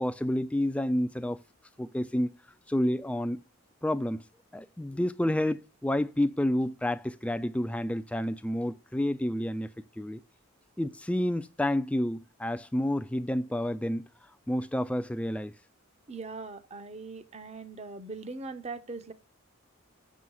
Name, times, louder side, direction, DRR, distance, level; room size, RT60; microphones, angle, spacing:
voice 1, 0.0-1.4 1.8-2.3 2.7-3.4 3.8-4.3 4.5-9.7 10.0-10.2 10.8-14.1 14.5-15.5, left 1 dB, 5° left, 0.3 m, -29 dB
voice 2, 16.1-19.1, right 3 dB, 30° right, 0.7 m, -40 dB
6.7 x 6.3 x 5.5 m
head